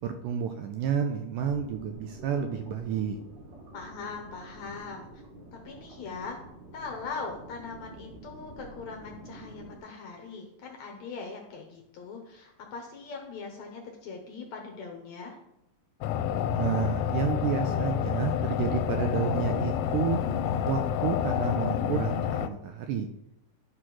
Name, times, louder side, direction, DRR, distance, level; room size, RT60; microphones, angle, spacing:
voice 1, 0.0-3.2 16.5-20.2 20.6-23.1, right 7 dB, 80° right, 6 dB, 2.0 m, -30 dB
sound 1, 1.4-9.8, right 1 dB, 60° right, 2.8 m, -48 dB
voice 2, 3.7-5.2 5.5-6.4 6.7-15.4, left 4 dB, 65° left, 2 dB, 1.9 m, -41 dB
sound 2, 16.0-22.5, left 9 dB, 85° left, 2.4 m, -28 dB
11.5 x 4.3 x 6.0 m, 0.81 s
omnidirectional pair, 4.3 m